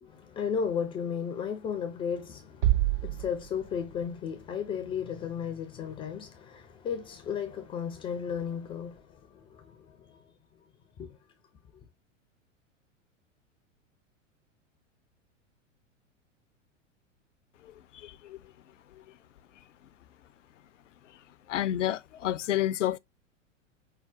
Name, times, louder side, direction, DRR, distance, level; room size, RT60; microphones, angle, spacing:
voice 1, 0.0-10.2 11.0-11.2, left 7 dB, 15° left, 0.4 m, -34 dB
sound 1, 2.6-4.6, right 14 dB, 45° right, 0.5 m, -29 dB
voice 2, 17.6-18.4 21.5-23.0, left 12 dB, 70° left, 0.5 m, -30 dB
5.6 x 2.3 x 3.5 m
figure-of-eight pair, 95°, 39 cm